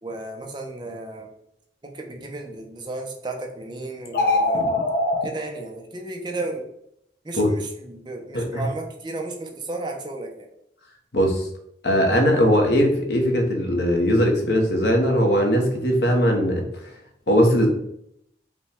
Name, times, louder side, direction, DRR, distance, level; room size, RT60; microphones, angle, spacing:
voice 1, 0.0-1.3 1.8-4.7 5.2-6.7 7.2-10.5, right 2 dB, 25° right, 2 dB, 0.6 m, -34 dB
sound 1, 4.1-5.3, left 2 dB, 60° left, 0.7 m, -21 dB
voice 2, 8.3-8.6 11.1-11.5 11.8-16.7 17.3-17.7, equal, 75° left, 2 dB, 0.9 m, -20 dB
5.1 x 2.3 x 3.4 m, 0.75 s
head